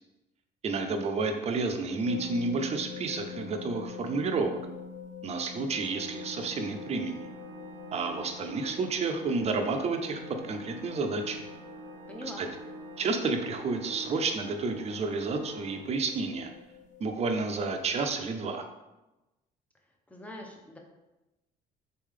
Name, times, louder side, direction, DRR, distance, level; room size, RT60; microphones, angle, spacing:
voice 1, 0.6-4.6 5.2-7.2 7.9-11.4 12.4-12.5 13.0-16.5 17.0-18.6, right 3 dB, 40° right, 5 dB, 0.6 m, -30 dB
sound 1, 2.0-18.1, left 7 dB, 45° left, 0.4 m, -46 dB
sound 2, 2.1-3.0 3.3-4.1 4.5-5.2 5.8-6.4 7.0-7.4 8.2-8.4 9.4-9.6 10.6-10.9 11.9-12.1 13.1-13.3 14.3-14.5 15.5-15.6 16.8-16.9, left 1 dB, 75° left, 0.8 m, -51 dB
Organ, 5.7-16.5, right 2 dB, 85° right, 0.5 m, -46 dB
voice 2, 12.1-12.5 20.1-20.8, left 1 dB, 10° left, 1 dB, 0.7 m, -43 dB
4.1 x 3.2 x 3.7 m, 1.0 s
cardioid pair, 110°, 17 cm